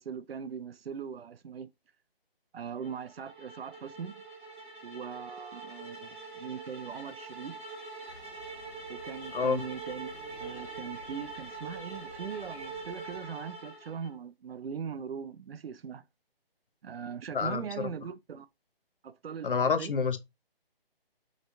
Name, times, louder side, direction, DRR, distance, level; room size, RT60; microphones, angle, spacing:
voice 1, 0.0-1.7 2.5-4.1 4.8-7.6 8.9-10.1 10.4-16.0 16.8-18.5 19.0-19.5 19.8-19.9, right 7 dB, 70° right, 0.6 m, -40 dB
sound 1, 2.8-14.2, right 3 dB, 10° right, 1.0 m, -44 dB
sound 2, 8.1-13.2, left 1 dB, 5° left, 1.3 m, -54 dB
voice 2, 17.3-17.9 19.4-20.2, left 5 dB, 60° left, 0.8 m, -28 dB
5.1 x 3.3 x 2.5 m
hypercardioid pair, 170°, 31 cm